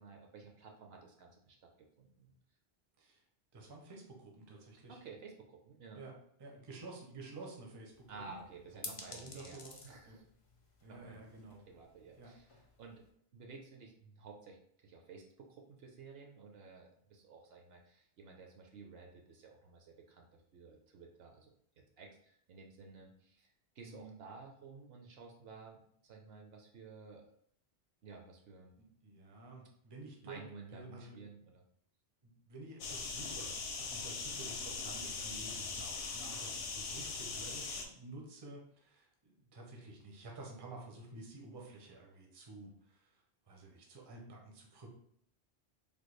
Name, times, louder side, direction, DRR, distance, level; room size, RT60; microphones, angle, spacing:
voice 1, 0.0-1.6 2.0-2.3 4.9-6.0 8.1-10.2 10.8-11.3 11.7-12.5 12.8-13.0 13.3-14.6 14.8-20.3 20.5-23.5 23.8-27.2 28.0-28.7 30.2-31.6 35.5-35.8, right 4 dB, 65° right, 1 dB, 0.8 m, -53 dB
voice 2, 3.5-5.0 5.9-8.4 8.7-9.8 10.1-10.2 10.8-11.6 12.2-12.3 23.9-24.2 28.8-30.4 30.7-31.2 32.2-44.9, right 2 dB, 30° right, 0 dB, 0.5 m, -51 dB
sound 1, 7.9-13.1, left 3 dB, 45° left, 0.5 m, -53 dB
sound 2, 32.8-37.8, left 4 dB, 65° left, 0.8 m, -41 dB
3.4 x 2.2 x 3.1 m, 0.67 s
omnidirectional pair, 1.2 m